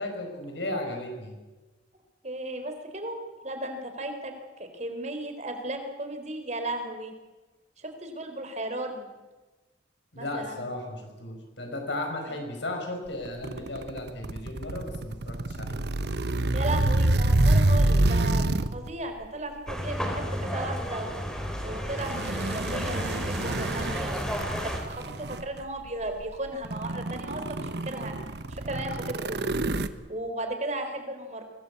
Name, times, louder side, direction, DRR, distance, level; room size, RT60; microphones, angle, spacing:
voice 1, 0.0-1.4 10.1-15.8, left 1 dB, 75° left, 3 dB, 5.4 m, -35 dB
voice 2, 2.2-3.2 3.4-7.1 7.8-9.1 10.2-10.6 12.3-12.4 16.5-21.2 21.6-28.1 28.5-29.4 30.1-31.4, right 1 dB, 40° right, 6 dB, 4.0 m, -35 dB
sound 1, 13.2-18.9 19.7-19.9 21.8-25.6 26.2-26.3 26.6-29.9, right 2 dB, 60° right, 1.1 m, -27 dB
sound 2, 19.7-24.8, equal, 5° left, 4.0 m, -32 dB
24.0 x 18.5 x 8.5 m, 1.2 s
head